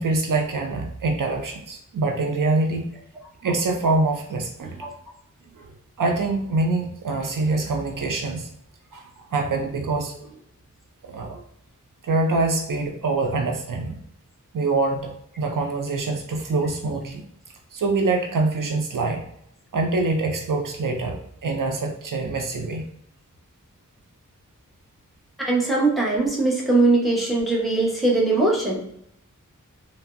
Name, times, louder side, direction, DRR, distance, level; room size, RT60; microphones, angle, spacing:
voice 1, 0.0-2.9 3.4-4.9 5.6-5.7 6.0-8.5 8.9-10.4 11.0-11.4 12.0-14.0 14.5-17.2 17.7-19.2 19.7-22.8, right 3 dB, 75° right, 2 dB, 0.5 m, -25 dB
voice 2, 25.4-28.8, right 2 dB, ahead, -4 dB, 0.9 m, -20 dB
3.2 x 2.0 x 2.4 m, 0.74 s
wide cardioid pair, 40°, 32 cm